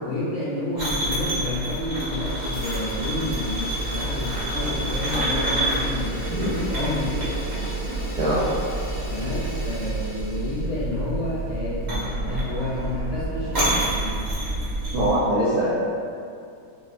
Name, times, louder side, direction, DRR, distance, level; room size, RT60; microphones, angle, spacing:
voice 1, 0.0-6.2 6.5-7.4 9.1-14.2, left 2 dB, 75° left, -9 dB, 0.7 m, -30 dB
sound 1, 0.8-15.2, right 1 dB, 85° right, 0.3 m, -28 dB
Fire, 1.1-1.6 1.9-10.7, right 1 dB, 25° right, 0.6 m, -37 dB
voice 2, 14.9-15.7, right 1 dB, 65° right, -9 dB, 1.0 m, -22 dB
4.9 x 2.3 x 2.5 m, 2.4 s
omnidirectional pair, 2.2 m